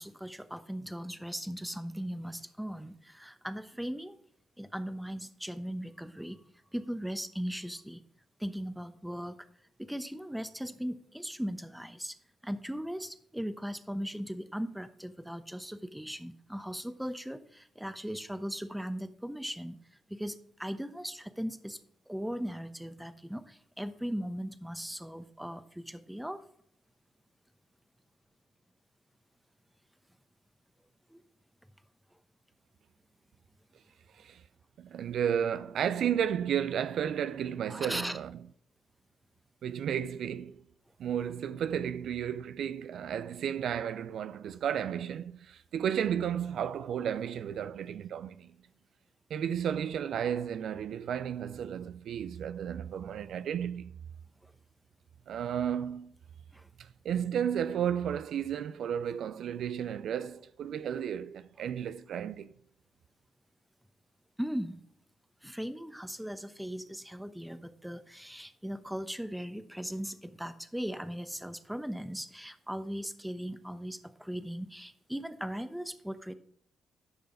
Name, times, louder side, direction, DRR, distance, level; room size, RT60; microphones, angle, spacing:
voice 1, 0.0-4.2 4.6-6.4 6.7-8.0 8.4-9.5 9.8-12.2 12.4-19.8 20.1-21.8 22.1-26.4 31.1-31.2 37.7-38.2 54.4-54.5 56.5-56.7 64.4-64.8 65.4-76.3, equal, 5° right, 0.9 m, -38 dB
voice 2, 34.8-38.3 39.6-40.6 41.0-48.5 49.3-53.9 55.3-56.1 56.8-62.5, right 9 dB, 70° right, 0.4 m, -33 dB
12.5 x 5.5 x 3.9 m
supercardioid pair, 55°, 0 cm